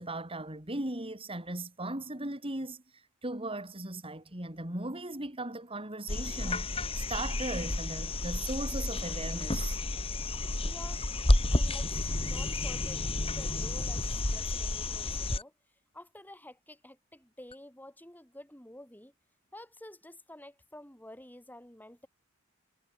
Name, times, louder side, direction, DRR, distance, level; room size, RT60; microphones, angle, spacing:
voice 1, 0.0-9.8, right 2 dB, 25° right, 3.8 m, -38 dB
sound 1, 6.1-15.4 17.5-17.6, left 2 dB, 25° left, 1.9 m, -31 dB
voice 2, 10.6-11.0 11.5-15.5 15.9-19.1 19.5-22.1, left 1 dB, 10° left, 4.9 m, -50 dB
head